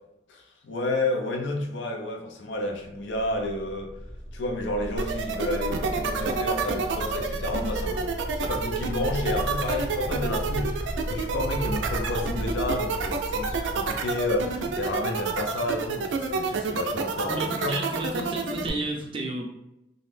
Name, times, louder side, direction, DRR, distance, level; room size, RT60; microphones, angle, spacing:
voice 1, 0.3-3.9 4.3-8.1 8.4-17.8, left 1 dB, 80° left, 2 dB, 0.5 m, -31 dB
sound 1, 3.0-16.6, equal, 50° left, 1.0 m, -35 dB
sound 2, 5.0-18.7, right 5 dB, 90° right, 0.3 m, -29 dB
voice 2, 17.3-19.4, right 1 dB, 30° right, 0 dB, 0.5 m, -32 dB
2.6 x 2.0 x 3.1 m, 0.87 s
head